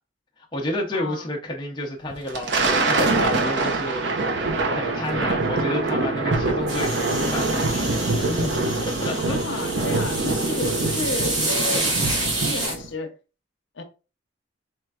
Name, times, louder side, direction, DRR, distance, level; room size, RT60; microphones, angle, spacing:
voice 1, 0.4-8.5 8.8-9.7, left 1 dB, 25° left, 0.5 m, -31 dB
voice 2, 0.9-1.3 9.2-13.1 13.8-13.9, left 2 dB, 70° left, 0.7 m, -32 dB
Thunder, 2.1-12.9, right 2 dB, 60° right, 0.6 m, -24 dB
sound 1, 6.7-12.8, right 2 dB, 85° right, 2.1 m, -28 dB
4.3 x 3.2 x 2.3 m
head